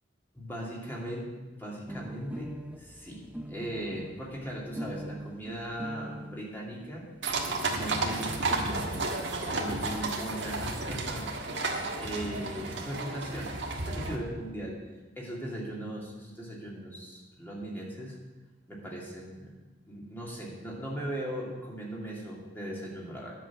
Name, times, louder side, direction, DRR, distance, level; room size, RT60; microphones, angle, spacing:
voice 1, 0.4-7.1 7.6-9.0 9.4-11.4 12.0-14.9 15.2-18.2 18.7-19.5 19.8-23.3, right 1 dB, 10° left, -4 dB, 2.5 m, -38 dB
sound 1, 1.9-6.5 7.3-7.4 7.6-7.7 8.0-8.1 8.3-8.9, equal, 5° right, 0.4 m, -42 dB
sound 2, 7.2-14.2, right 2 dB, 70° right, 1.5 m, -32 dB
10.5 x 6.8 x 7.3 m, 1.2 s
head